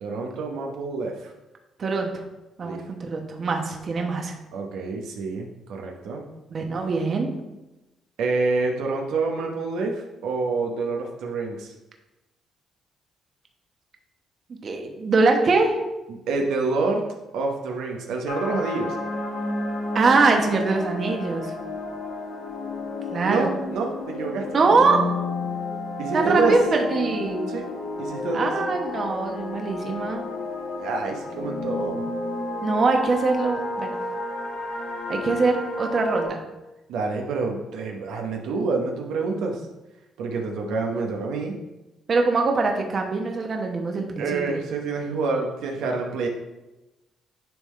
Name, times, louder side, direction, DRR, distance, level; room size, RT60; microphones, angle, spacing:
voice 1, 0.0-1.3 2.6-2.8 4.5-6.2 8.2-11.7 16.1-17.0 17.3-18.9 23.2-24.4 26.0-26.5 27.5-27.7 28.0-28.5 30.8-32.0 36.9-39.7 40.2-41.6 44.2-46.3, right 3 dB, 90° right, 1 dB, 0.9 m, -27 dB
voice 2, 1.8-2.1 2.6-4.3 6.5-7.3 14.6-15.8 19.9-21.5 23.1-23.6 24.5-25.0 26.1-27.5 28.3-30.2 32.6-34.0 35.1-36.4 42.1-44.6, right 3 dB, 50° right, 3 dB, 1.0 m, -23 dB
sound 1, 18.3-36.3, left 2 dB, 85° left, 1.5 m, -31 dB
10.5 x 3.6 x 3.2 m, 1.0 s
cardioid pair, 90°, 0 cm